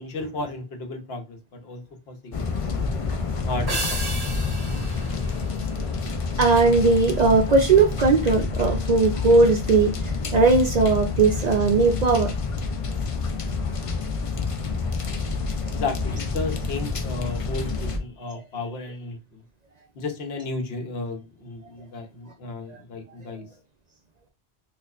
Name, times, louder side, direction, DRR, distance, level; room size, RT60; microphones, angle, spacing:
voice 1, 0.0-1.4 1.6-1.8 2.1-2.8 3.4-3.8 15.7-19.2 20.0-23.5, left 3 dB, 75° left, 1.0 m, -33 dB
sound 1, 2.3-18.0, left 4 dB, 50° left, 0.4 m, -28 dB
sound 2, 3.7-6.3, right 2 dB, 25° right, 0.7 m, -33 dB
voice 2, 6.4-9.9 10.2-12.3, right 3 dB, 55° right, 0.5 m, -18 dB
4.3 x 2.4 x 2.3 m
omnidirectional pair, 1.1 m